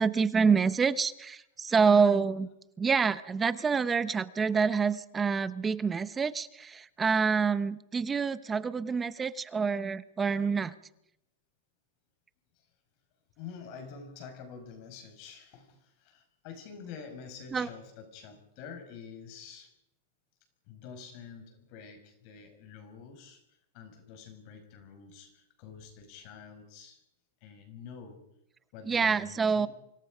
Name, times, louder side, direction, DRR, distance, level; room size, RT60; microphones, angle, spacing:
voice 1, 0.0-2.5 2.8-10.7 17.5-17.7 28.9-29.7, right 5 dB, 15° right, 14 dB, 1.0 m, -27 dB
voice 2, 13.4-19.7 20.7-23.4 23.7-27.0 27.4-28.2 28.7-29.7, left 6 dB, 50° left, 6 dB, 5.5 m, -47 dB
28.5 x 25.5 x 5.2 m, 0.81 s
supercardioid pair, 140°, 0 cm